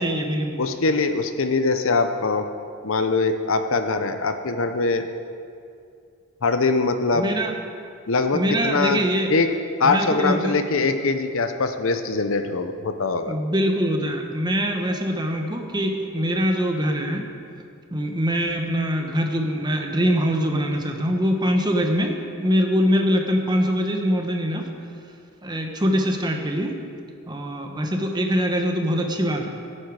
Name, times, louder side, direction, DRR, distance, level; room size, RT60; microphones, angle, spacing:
voice 1, 0.0-0.6 7.1-7.5 8.3-9.3 9.8-10.6 13.3-17.3 17.9-24.7 25.4-26.8 27.3-29.5, equal, 20° right, 3 dB, 1.1 m, -23 dB
voice 2, 0.6-2.4 2.8-5.1 6.4-7.3 8.1-9.0 9.3-9.5 9.8-13.4, left 3 dB, 60° left, 8 dB, 0.7 m, -22 dB
16.5 x 8.8 x 4.8 m, 2.4 s
head